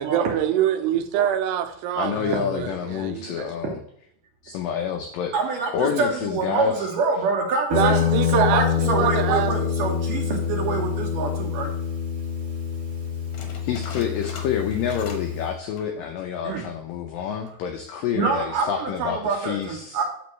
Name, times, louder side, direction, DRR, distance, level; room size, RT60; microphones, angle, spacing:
voice 1, 0.0-3.4 7.7-9.5, right 10 dB, 85° right, 8 dB, 2.7 m, -25 dB
voice 2, 2.0-3.8 4.4-5.3 5.7-6.9 13.6-20.0, left 8 dB, 85° left, 5 dB, 1.9 m, -28 dB
voice 3, 5.3-11.7 16.4-16.7 18.1-20.0, right 4 dB, 70° right, 1 dB, 2.2 m, -26 dB
Guitar, 7.7-15.5, left 8 dB, 55° right, 1.1 m, -26 dB
sound 1, 13.3-15.4 15.7-16.0 16.5-16.6 17.3-17.7, left 5 dB, 70° left, 1.7 m, -42 dB
9.6 x 6.9 x 3.1 m, 0.71 s
omnidirectional pair, 4.9 m